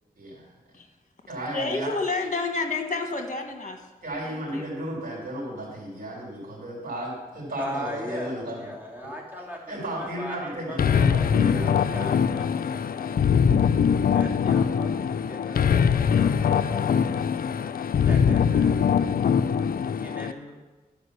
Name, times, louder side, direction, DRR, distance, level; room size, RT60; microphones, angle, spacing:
voice 1, 0.2-0.5 1.3-1.9 4.0-8.7 9.7-12.0, right 1 dB, 60° right, -2 dB, 3.8 m, -34 dB
voice 2, 1.5-3.8 4.2-4.7, left 3 dB, 50° left, 5 dB, 1.4 m, -29 dB
voice 3, 7.6-13.2 14.1-17.7 18.0-18.8 19.8-20.6, equal, 10° right, -2 dB, 2.7 m, -39 dB
sound 1, 10.8-20.3, left 7 dB, 65° left, 0.4 m, -22 dB
11.0 x 5.0 x 6.7 m, 1.2 s
cardioid pair, 55°, 16 cm